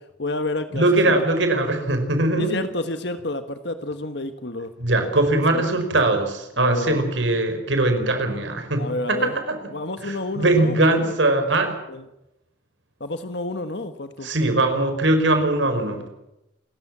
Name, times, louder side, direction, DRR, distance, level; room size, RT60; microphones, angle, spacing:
voice 1, 0.2-1.2 2.4-4.7 5.5-5.6 6.6-7.0 8.8-9.4 9.7-11.0 11.9-12.0 13.0-14.3 15.6-16.1, left 2 dB, 60° left, 9 dB, 1.5 m, -30 dB
voice 2, 0.7-2.6 4.8-9.6 10.0-11.8 14.2-16.0, right 2 dB, 70° right, 7 dB, 5.0 m, -21 dB
28.5 x 14.5 x 7.4 m, 0.88 s
head